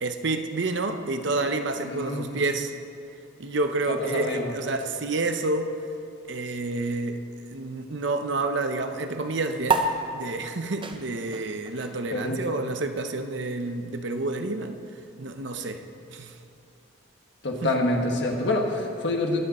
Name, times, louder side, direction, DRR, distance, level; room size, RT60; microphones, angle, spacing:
voice 1, 0.0-2.7 3.4-5.8 6.3-7.2 7.5-9.8 10.1-14.7 15.2-15.8 16.1-16.3 17.6-17.7, right 2 dB, 60° right, 7 dB, 0.7 m, -29 dB
voice 2, 1.8-2.4 4.0-4.5 12.1-12.4 17.4-19.4, left 2 dB, 55° left, 1 dB, 1.5 m, -26 dB
sound 1, 9.6-16.5, right 3 dB, 25° right, 0.6 m, -33 dB
21.5 x 7.7 x 4.2 m, 2.5 s
head